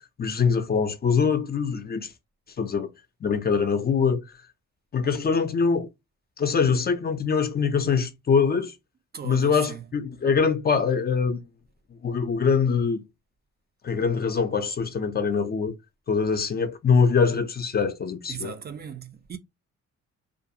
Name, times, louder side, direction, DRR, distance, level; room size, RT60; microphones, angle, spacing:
voice 1, 0.2-2.1 2.6-2.9 3.2-4.2 4.9-5.9 6.4-8.7 9.2-11.4 12.0-13.0 13.8-15.7 16.1-18.5, left 5 dB, 30° left, 0.5 m, -23 dB
voice 2, 9.1-9.8 18.3-19.4, right 7 dB, 35° right, 0.4 m, -37 dB
2.5 x 2.3 x 2.7 m
cardioid pair, 90°, 30 cm